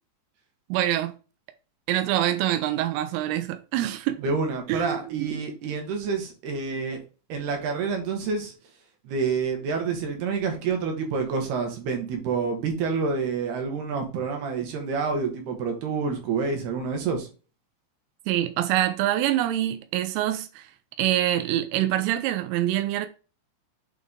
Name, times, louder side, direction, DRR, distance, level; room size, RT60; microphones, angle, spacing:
voice 1, 0.7-1.1 1.9-4.2 4.7-5.4 18.3-20.7 21.0-23.1, right 13 dB, 85° right, 3.3 m, -25 dB
voice 2, 4.2-7.0 7.3-8.5 9.0-17.3, right 5 dB, 65° right, 2.8 m, -28 dB
8.1 x 3.6 x 3.6 m
omnidirectional pair, 5.7 m